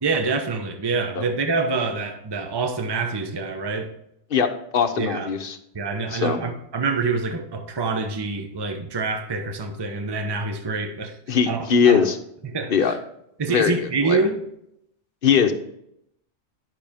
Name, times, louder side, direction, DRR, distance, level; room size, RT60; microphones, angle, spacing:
voice 1, 0.0-3.9 5.0-5.3 5.7-11.1 11.5-12.0 12.4-13.0 13.4-14.4, right 4 dB, 25° right, 0.8 m, -26 dB
voice 2, 4.3-5.6 6.1-6.4 11.3-12.2 12.7-13.0 13.5-14.2 15.2-15.5, left 6 dB, 50° left, 1.0 m, -20 dB
11.0 x 5.9 x 3.5 m
omnidirectional pair, 1.3 m